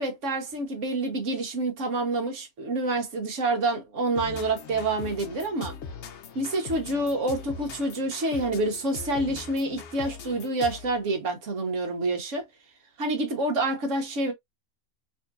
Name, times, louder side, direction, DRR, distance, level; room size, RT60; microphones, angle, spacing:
voice 1, 0.0-5.7 6.3-12.4 13.0-14.3, right 2 dB, 60° right, 1.4 m, -28 dB
sound 1, 4.2-11.0, left 5 dB, 60° left, 0.9 m, -41 dB
4.2 x 2.7 x 2.5 m
omnidirectional pair, 1.5 m